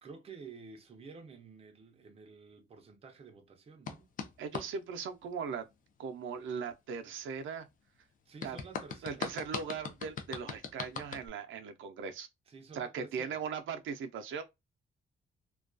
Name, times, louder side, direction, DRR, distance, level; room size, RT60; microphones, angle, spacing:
voice 1, 0.0-4.1 8.3-9.3 12.5-13.4, right 4 dB, 30° right, 0.4 m, -51 dB
sound 1, 3.9-4.7 8.4-11.3, left 6 dB, 45° left, 0.4 m, -40 dB
voice 2, 4.4-5.7 6.0-7.7 8.4-8.6 9.0-12.3 12.7-14.4, right 6 dB, 85° right, 0.4 m, -39 dB
2.2 x 2.2 x 2.4 m
wide cardioid pair, 175°, 20 cm